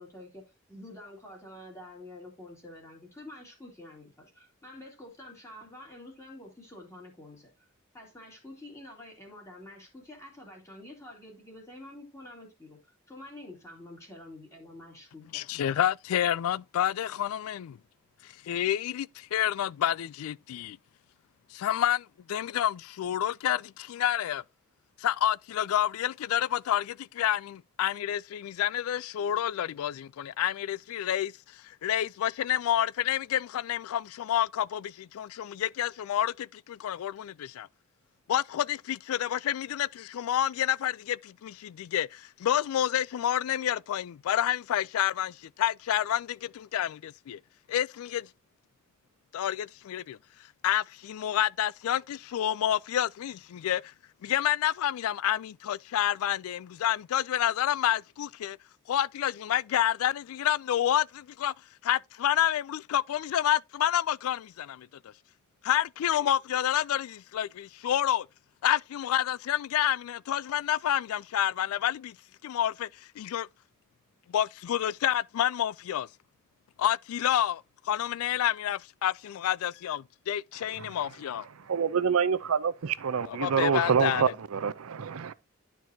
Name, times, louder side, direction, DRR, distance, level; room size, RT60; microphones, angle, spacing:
voice 1, 0.0-7.7 7.9-15.4, left 1 dB, 15° left, 2.6 m, -48 dB
voice 2, 15.3-17.8 18.2-20.8 21.5-24.4 25.0-37.7 38.3-47.4 47.7-48.3 49.3-50.2 50.6-53.9 54.2-58.6 58.9-61.5 61.8-64.9 65.6-68.3 68.6-72.2 72.4-73.5 74.3-76.1 76.8-80.0 80.3-81.5 83.2-84.3, left 11 dB, 80° left, 0.3 m, -29 dB
voice 3, 81.6-85.3, right 6 dB, 80° right, 0.5 m, -27 dB
11.5 x 4.6 x 2.7 m
head